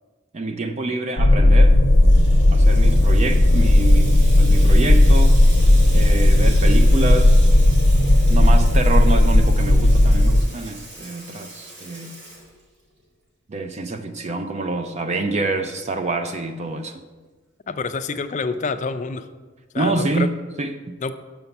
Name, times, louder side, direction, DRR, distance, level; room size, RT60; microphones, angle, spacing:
voice 1, 0.3-1.8 2.5-5.4 5.9-7.5 8.3-12.2 13.5-17.0 19.8-20.8, right 2 dB, 35° right, 7 dB, 0.4 m, -26 dB
sound 1, 1.2-10.4, left 1 dB, 85° left, 0.8 m, -14 dB
Water tap faucet / Sink (filling or washing), 1.6-13.0, right 1 dB, 60° right, 2.4 m, -40 dB
voice 2, 17.7-19.3 19.7-20.3 21.0-21.2, left 4 dB, 35° left, 10 dB, 0.4 m, -27 dB
6.8 x 5.4 x 5.8 m, 1.3 s
head